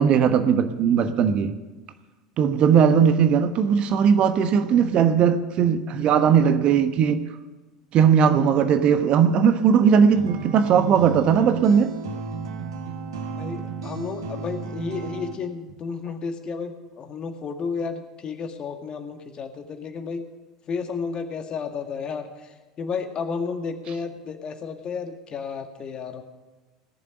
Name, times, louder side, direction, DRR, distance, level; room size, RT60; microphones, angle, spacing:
voice 1, 0.0-1.5 2.4-7.2 7.9-11.9, right 7 dB, 40° right, 10 dB, 1.2 m, -18 dB
sound 1, 10.1-15.3, right 5 dB, 70° right, 1.9 m, -34 dB
voice 2, 13.3-20.3 20.7-26.2, left 5 dB, 35° left, 7 dB, 1.9 m, -32 dB
18.5 x 7.3 x 9.8 m, 1.2 s
figure-of-eight pair, 75°, 3 cm